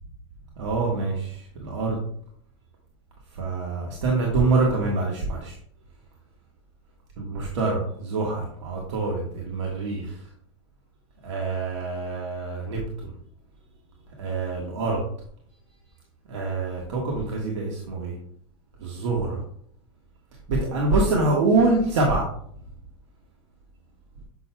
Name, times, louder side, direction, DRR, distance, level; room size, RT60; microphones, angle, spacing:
voice 1, 0.6-2.0 3.4-5.6 7.2-10.2 11.2-13.1 14.2-15.0 16.3-18.2 18.8-19.4 20.5-22.3, right 3 dB, 90° right, -2 dB, 1.5 m, -25 dB
7.8 x 5.9 x 2.2 m, 0.63 s
supercardioid pair, 125°, 15 cm